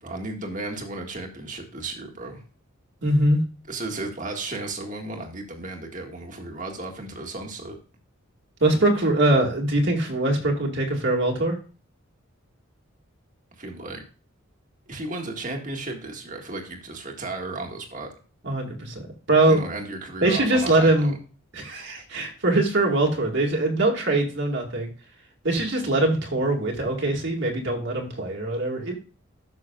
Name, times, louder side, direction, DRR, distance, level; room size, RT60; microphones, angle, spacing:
voice 1, 0.0-2.4 3.7-7.8 13.6-14.0 14.9-18.1 19.5-21.1, right 2 dB, 40° right, 3 dB, 1.8 m, -34 dB
voice 2, 3.0-3.4 8.6-11.6 18.4-19.6 20.2-21.2 21.5-24.9 25.4-29.0, right 2 dB, 55° right, 1 dB, 2.0 m, -22 dB
13.0 x 6.2 x 2.4 m, 0.36 s
head